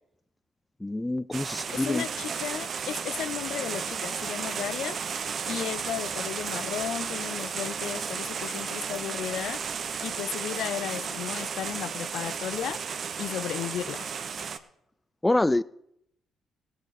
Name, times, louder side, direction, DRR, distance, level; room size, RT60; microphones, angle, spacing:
voice 1, 0.8-2.1 15.2-15.6, left 2 dB, 15° left, 0.5 m, -26 dB
sound 1, 1.3-14.6, right 6 dB, 55° right, 0.9 m, -33 dB
voice 2, 1.7-5.0 5.5-9.6 10.0-12.8 13.2-14.1, left 11 dB, 75° left, 0.4 m, -34 dB
18.0 x 7.7 x 4.7 m
supercardioid pair, 55°, 0 cm